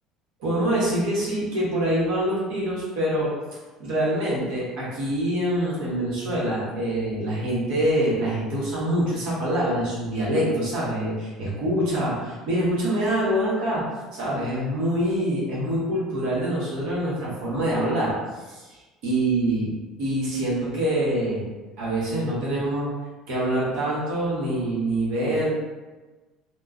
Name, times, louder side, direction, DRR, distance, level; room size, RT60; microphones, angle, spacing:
voice 1, 0.4-3.3 3.8-13.9 14.1-18.2 18.5-19.7 20.0-21.5 21.8-22.9 23.3-25.5, right 1 dB, 75° right, -6 dB, 1.1 m, -25 dB
2.7 x 2.3 x 2.4 m, 1.2 s
cardioid pair, 140°, 0 cm